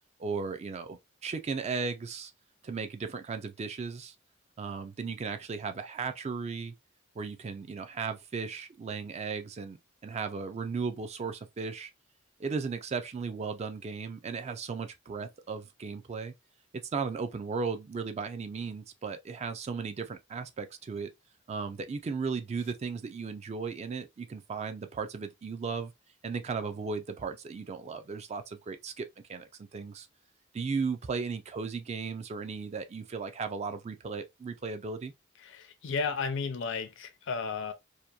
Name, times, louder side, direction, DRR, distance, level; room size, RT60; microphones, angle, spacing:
voice 1, 0.2-2.3 2.6-4.1 4.6-6.7 7.2-9.8 10.0-11.9 12.4-16.3 16.9-21.1 21.5-25.9 26.2-29.0 29.3-30.1 30.5-35.1, right 5 dB, 30° right, 0.3 m, -36 dB
voice 2, 35.4-37.7, left 5 dB, 65° left, 0.5 m, -33 dB
2.8 x 2.1 x 2.2 m
head